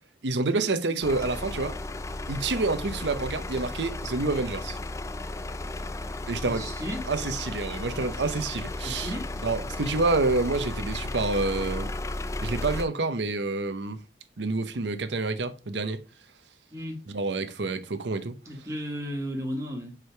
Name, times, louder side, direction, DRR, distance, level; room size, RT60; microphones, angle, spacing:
voice 1, 0.2-1.8 2.3-4.8 6.3-6.7 7.1-9.1 9.4-11.9 12.4-14.0 14.4-16.0 17.1-18.4, right 3 dB, 85° right, 0.8 m, -28 dB
sound 1, 1.0-12.8, left 2 dB, 15° left, 0.3 m, -34 dB
voice 2, 6.5-7.0 8.8-9.3 16.7-17.0 18.4-20.0, equal, 20° right, 1.5 m, -34 dB
4.9 x 4.7 x 4.6 m
head